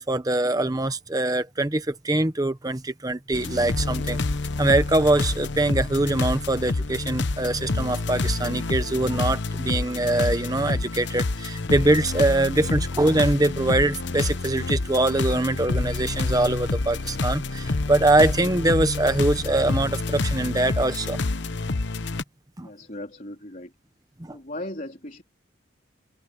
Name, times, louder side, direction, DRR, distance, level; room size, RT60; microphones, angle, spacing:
voice 1, 0.0-4.2 4.6-21.2 22.6-22.7 24.2-24.4, right 2 dB, 20° right, 0.9 m, -23 dB
sound 1, 3.3-22.2, left 3 dB, 60° left, 0.9 m, -28 dB
voice 2, 22.6-23.7 24.3-25.2, left 1 dB, 40° left, 3.9 m, -37 dB
open air
head